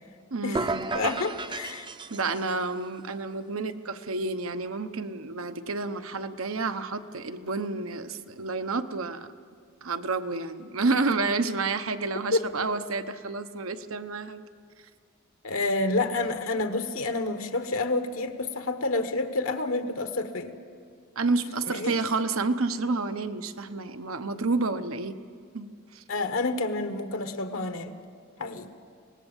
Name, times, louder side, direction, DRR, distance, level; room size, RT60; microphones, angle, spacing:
voice 1, 0.3-0.9 2.1-9.3 9.8-14.4 21.2-25.2 25.5-26.0, right 3 dB, 90° right, 9 dB, 1.0 m, -30 dB
sound 1, 0.5-2.6, right 3 dB, 25° right, 0.5 m, -33 dB
voice 2, 0.9-1.9 12.3-12.4 15.4-20.6 21.7-22.0 26.1-27.9 28.4-28.7, left 2 dB, 80° left, 8 dB, 1.3 m, -29 dB
24.5 x 19.0 x 7.3 m, 2.1 s
head